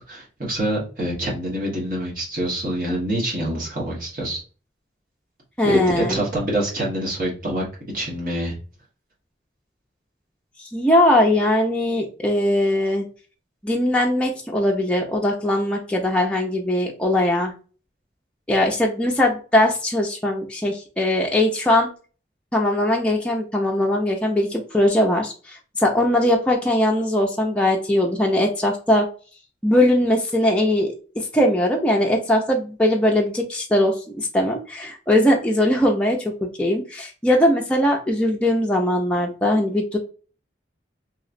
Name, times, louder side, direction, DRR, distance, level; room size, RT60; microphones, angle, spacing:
voice 1, 0.1-4.4 5.6-7.6 7.9-8.5, right 1 dB, 50° right, -3 dB, 1.2 m, -26 dB
voice 2, 5.6-6.2 10.7-13.1 13.6-17.5 18.5-21.9 22.5-29.1 29.6-40.0, left 1 dB, 5° left, -1 dB, 0.5 m, -20 dB
3.0 x 2.8 x 2.5 m, 0.37 s
head